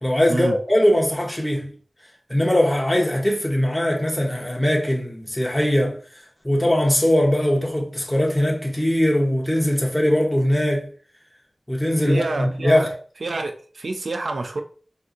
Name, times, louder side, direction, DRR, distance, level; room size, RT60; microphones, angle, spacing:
voice 1, 0.0-1.7 2.3-6.0 6.4-10.9 11.7-12.9, left 1 dB, 10° left, 0.8 m, -20 dB
voice 2, 12.0-12.9 13.2-14.6, right 2 dB, 85° right, 0.4 m, -27 dB
3.6 x 2.7 x 2.5 m
wide cardioid pair, 55°, 0 cm